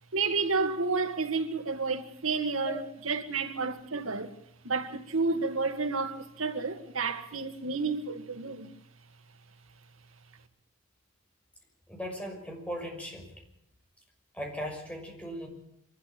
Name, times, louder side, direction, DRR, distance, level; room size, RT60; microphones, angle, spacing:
voice 1, 0.1-4.3 4.6-8.7, right 4 dB, 90° right, 2.1 m, -30 dB
voice 2, 11.9-13.3 14.3-15.5, equal, 5° left, 6.1 m, -38 dB
25.0 x 13.0 x 9.0 m
head